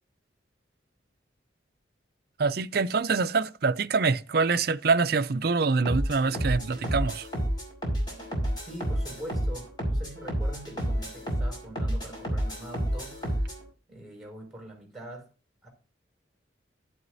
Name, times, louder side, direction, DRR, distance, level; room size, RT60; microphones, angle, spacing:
voice 1, 2.4-7.3, right 4 dB, 55° right, 0.5 m, -25 dB
sound 1, 5.8-13.6, equal, 25° left, 4.7 m, -30 dB
voice 2, 8.6-13.6 13.9-15.3 15.6-15.7, right 1 dB, ahead, 5.6 m, -43 dB
12.0 x 11.0 x 2.7 m
head